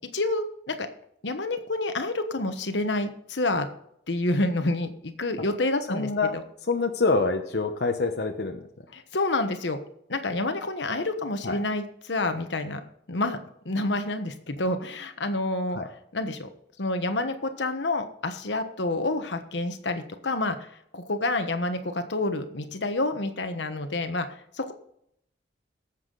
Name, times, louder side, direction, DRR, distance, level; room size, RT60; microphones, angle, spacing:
voice 1, 0.1-0.9 1.2-3.7 4.1-6.1 8.9-9.8 10.1-12.8 13.1-13.4 13.6-15.8 16.1-16.5 16.8-20.7 20.9-24.3 24.6-24.7, left 2 dB, 80° left, 8 dB, 1.2 m, -28 dB
voice 2, 5.9-6.4 6.7-8.7 11.4-11.6 15.7-15.9, left 3 dB, 60° left, 4 dB, 1.0 m, -26 dB
17.5 x 7.3 x 4.0 m, 0.71 s
head